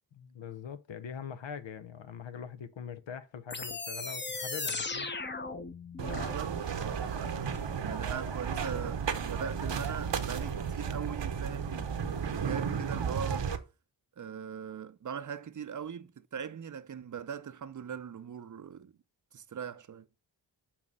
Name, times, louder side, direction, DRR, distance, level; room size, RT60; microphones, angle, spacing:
voice 1, 0.1-5.1, left 7 dB, 75° left, 0.7 m, -43 dB
sound 1, 3.5-6.4, left 3 dB, 25° left, 0.8 m, -37 dB
voice 2, 6.0-13.5 14.2-18.9 19.3-20.1, right 7 dB, 40° right, 0.6 m, -41 dB
sound 2, 6.0-13.6, right 6 dB, 70° right, 0.9 m, -33 dB
7.1 x 2.9 x 5.3 m
cardioid pair, 45°, 45 cm